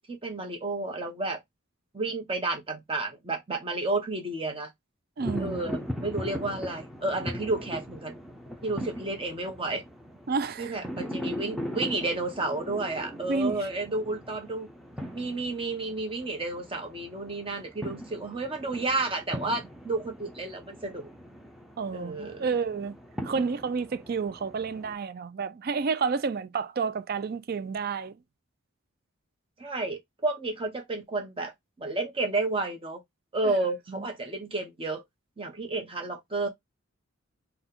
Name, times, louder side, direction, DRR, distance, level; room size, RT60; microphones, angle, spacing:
voice 1, 0.0-1.4 1.9-4.7 5.4-8.1 8.6-9.8 10.6-14.7 15.1-21.1 21.9-22.4 29.6-33.0 33.3-35.0 35.4-36.5, right 2 dB, 25° right, 0.9 m, -31 dB
sound 1, 5.2-24.9, equal, ahead, 0.6 m, -40 dB
voice 2, 5.2-5.6 10.3-10.7 13.3-13.7 21.8-23.0 23.2-28.2 33.4-33.5 33.9-34.0, right 5 dB, 50° right, 0.4 m, -30 dB
4.1 x 2.2 x 3.8 m
head